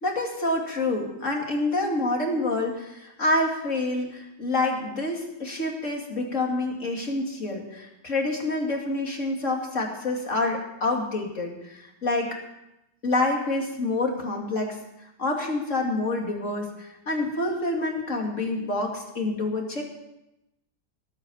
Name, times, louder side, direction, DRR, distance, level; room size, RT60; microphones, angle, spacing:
voice 1, 0.0-12.4 13.0-14.8 15.2-19.8, left 2 dB, 45° left, 1 dB, 2.8 m, -27 dB
18.5 x 8.7 x 7.2 m, 0.88 s
omnidirectional pair, 1.8 m